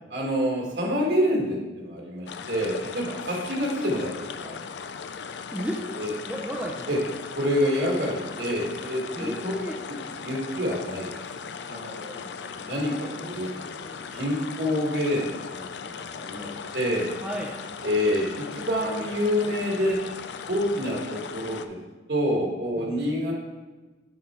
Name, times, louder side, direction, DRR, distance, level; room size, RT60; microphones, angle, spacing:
voice 1, 0.1-4.1 4.4-4.5 6.0-6.1 6.9-7.0 7.4-9.5 9.9-10.0 10.2-11.1 11.7-13.5 14.1-15.6 16.0-16.5 16.7-17.1 17.8-20.0 20.5-21.8 22.1-23.4, equal, 65° right, -2 dB, 1.8 m, -27 dB
sound 1, 2.3-21.7, left 6 dB, 65° left, 0.4 m, -38 dB
voice 2, 5.5-6.9 9.2-9.8 12.7-14.0 17.2-17.5 22.8-23.1, equal, 5° right, -2 dB, 0.6 m, -35 dB
9.8 x 4.2 x 4.5 m, 1.2 s
head